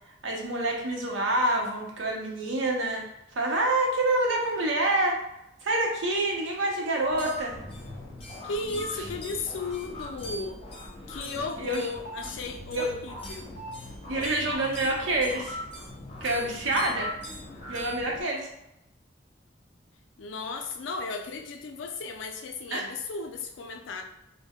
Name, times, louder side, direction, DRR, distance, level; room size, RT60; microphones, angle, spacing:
voice 1, 0.2-3.0 3.3-5.2 5.6-7.6 11.6-11.9 12.7-12.9 14.1-15.6 16.2-17.1 17.7-18.5 22.7-22.8, right 2 dB, 85° right, 0 dB, 0.7 m, -27 dB
sound 1, 7.1-18.2, left 1 dB, 30° left, 0.5 m, -40 dB
voice 2, 8.4-10.6 11.1-13.5 20.2-24.0, left 3 dB, 80° left, 4 dB, 0.4 m, -35 dB
2.2 x 2.1 x 3.4 m, 0.83 s
head